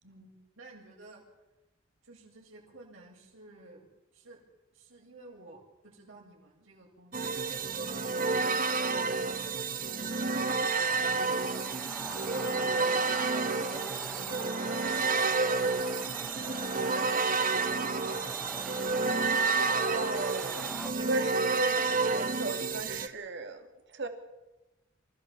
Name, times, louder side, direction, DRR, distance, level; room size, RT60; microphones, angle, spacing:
voice 1, 0.0-1.2 2.0-3.9 4.1-4.4 4.7-11.8 12.3-18.6, right 2 dB, 80° right, -2 dB, 7.3 m, -54 dB
sound 1, 7.1-23.1, right 4 dB, 45° right, 1.2 m, -30 dB
sound 2, 9.5-20.9, right 1 dB, 5° right, 0.9 m, -44 dB
voice 2, 19.9-24.1, right 2 dB, 60° right, 6 dB, 2.8 m, -36 dB
28.0 x 15.0 x 7.2 m, 1.0 s
head